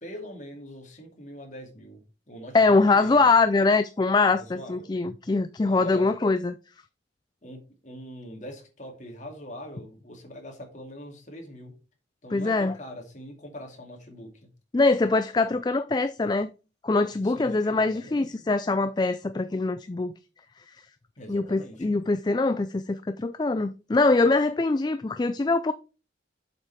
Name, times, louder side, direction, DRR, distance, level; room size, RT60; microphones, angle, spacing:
voice 1, 0.0-2.0 2.3-3.3 4.2-4.9 5.6-6.0 7.4-11.7 12.2-14.5 17.2-18.2 21.2-21.9, equal, 40° left, 2.4 m, -42 dB
voice 2, 2.5-6.6 12.3-12.7 14.7-16.5 16.8-20.1 21.3-25.7, left 3 dB, 20° left, 0.3 m, -23 dB
7.6 x 5.5 x 4.6 m
head